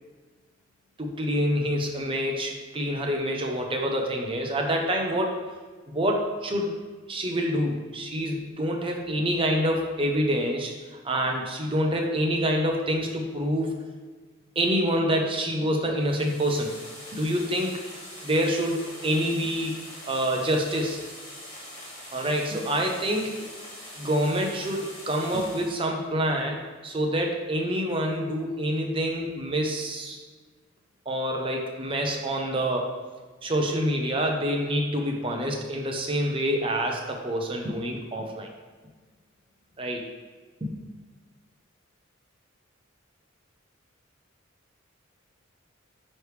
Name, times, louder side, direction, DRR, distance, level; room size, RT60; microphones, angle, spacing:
voice 1, 1.0-5.4 5.9-6.7 7.1-13.7 14.6-16.7 17.1-17.8 18.2-19.7 20.1-21.0 22.1-23.3 24.0-30.2 31.1-33.0 33.4-38.5 39.8-40.0 40.6-40.7, equal, 25° right, 1 dB, 0.7 m, -27 dB
sound 1, 16.0-25.9, left 1 dB, 25° left, 1.8 m, -43 dB
9.5 x 3.2 x 3.3 m, 1.4 s
head